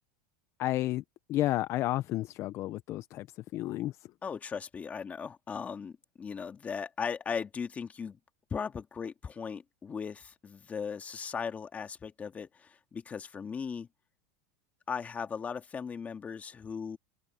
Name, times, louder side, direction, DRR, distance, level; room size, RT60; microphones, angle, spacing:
voice 1, 0.6-1.0 1.3-3.3 3.5-3.9, left 15 dB, 40° left, 0.6 m, -31 dB
voice 2, 4.2-8.2 8.5-13.9 14.9-17.0, left 6 dB, 20° left, 2.0 m, -38 dB
supercardioid pair, 130°, 7 cm